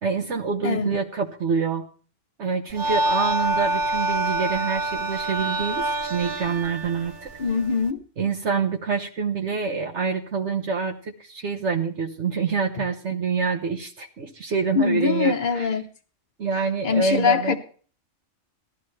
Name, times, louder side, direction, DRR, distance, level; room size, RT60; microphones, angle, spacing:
voice 1, 0.0-1.9 2.4-7.3 8.2-15.7 16.4-17.6, right 5 dB, 60° right, 1.2 m, -26 dB
sound 1, 2.7-7.9, right 1 dB, 40° right, 1.1 m, -27 dB
voice 2, 7.4-8.0 14.7-15.9 16.8-17.6, left 5 dB, 45° left, 0.9 m, -23 dB
17.0 x 13.0 x 3.2 m
omnidirectional pair, 1.3 m